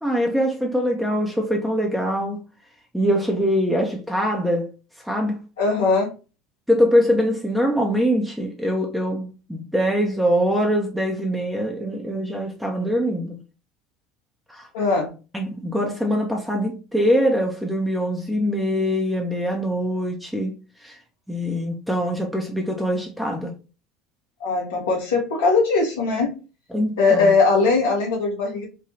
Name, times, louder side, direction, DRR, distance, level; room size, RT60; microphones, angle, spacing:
voice 1, 0.0-2.4 2.9-4.7 5.0-5.4 6.7-13.4 14.5-14.7 15.3-20.6 20.8-21.0 21.3-23.5 26.7-27.3, equal, ahead, 0.7 m, -23 dB
voice 2, 5.6-6.1 14.7-15.1 24.4-26.4 27.0-28.7, left 4 dB, 75° left, 1.1 m, -20 dB
3.3 x 2.2 x 2.8 m
figure-of-eight pair, 65°, 0 cm